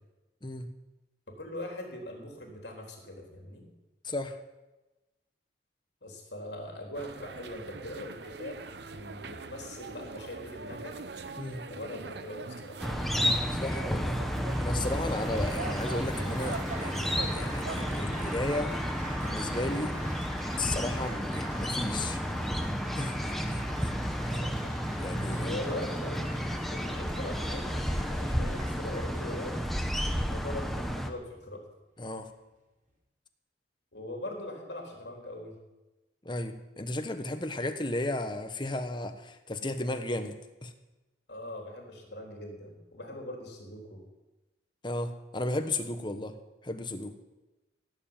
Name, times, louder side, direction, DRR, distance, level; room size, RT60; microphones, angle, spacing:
voice 1, 1.4-3.6 6.0-8.6 8.9-11.0 11.7-12.8 24.3-25.0 25.4-29.5 30.2-31.6 33.9-35.5 41.3-44.0, left 1 dB, 65° left, 1 dB, 3.8 m, -41 dB
voice 2, 4.0-4.4 11.4-11.6 13.5-14.2 14.6-18.8 19.2-20.0 20.6-22.2 22.9-23.1 24.3-24.4 25.0-25.6 32.0-32.3 36.2-40.4 40.6-40.7 44.8-46.3 46.6-47.1, left 2 dB, 25° left, 7 dB, 1.2 m, -34 dB
sound 1, 6.9-18.0, right 3 dB, 65° right, 0.9 m, -42 dB
sound 2, 12.8-31.1, equal, ahead, 1.0 m, -32 dB
Applause, 14.5-30.4 31.1-31.5, right 1 dB, 45° right, 4.5 m, -47 dB
17.0 x 7.3 x 9.0 m, 1.1 s
head